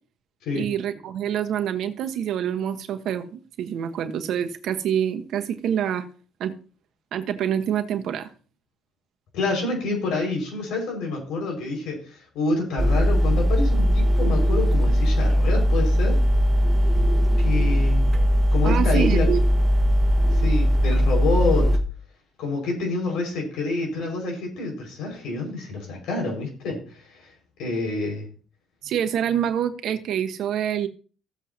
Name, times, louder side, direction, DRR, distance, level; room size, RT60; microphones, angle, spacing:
voice 1, 0.5-6.0 6.4-6.5 7.1-8.3 18.6-19.4 28.8-30.9, right 9 dB, 65° right, 7 dB, 1.2 m, -26 dB
voice 2, 9.3-16.2 17.4-18.0 18.5-19.3 20.3-21.7 22.4-27.3 27.6-28.3, left 3 dB, 75° left, 1 dB, 5.3 m, -27 dB
sound 1, 12.8-21.8, equal, 25° right, 1.4 m, -19 dB
15.5 x 7.7 x 2.8 m, 0.38 s
cardioid pair, 100°, 0 cm